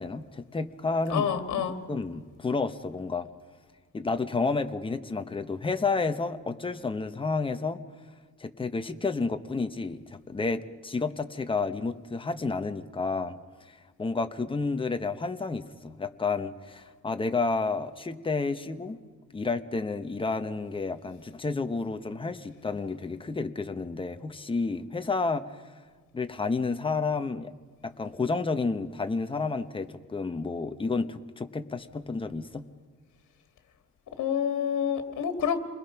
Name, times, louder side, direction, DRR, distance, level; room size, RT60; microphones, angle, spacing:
voice 1, 0.0-1.3 1.9-3.3 3.9-7.8 8.4-13.4 13.6-19.0 19.3-25.4 26.1-27.5 27.8-32.6, left 4 dB, 15° left, 8 dB, 1.0 m, -30 dB
voice 2, 1.1-1.8 34.2-35.6, left 8 dB, 60° left, 6 dB, 2.2 m, -28 dB
28.5 x 21.0 x 5.9 m, 1.5 s
cardioid pair, 150°, 33 cm